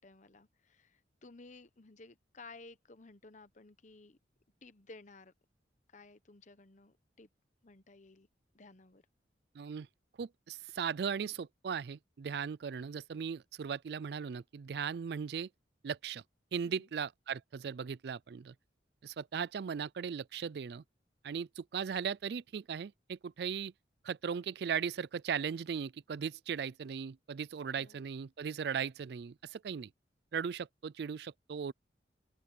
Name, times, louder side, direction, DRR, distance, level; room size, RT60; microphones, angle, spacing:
voice 1, 0.0-4.2 4.6-5.3 5.9-7.3 7.6-8.3 8.5-9.0 16.6-16.9 27.8-28.0, left 3 dB, 45° left, 1.0 m, -55 dB
voice 2, 9.6-9.9 10.2-15.5 15.8-16.2 16.5-18.5 19.0-20.8 21.2-23.7 24.0-29.9 30.3-31.7, right 7 dB, 65° right, 0.4 m, -38 dB
open air
head